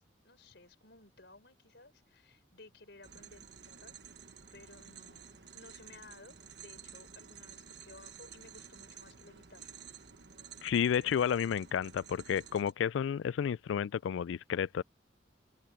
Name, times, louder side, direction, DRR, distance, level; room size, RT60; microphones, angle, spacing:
voice 1, 0.2-3.9 4.5-9.7, left 2 dB, 65° left, 5.2 m, -57 dB
sound 1, 3.0-12.7, right 7 dB, 60° right, 1.5 m, -52 dB
voice 2, 10.6-14.8, left 8 dB, 80° left, 0.3 m, -31 dB
open air
head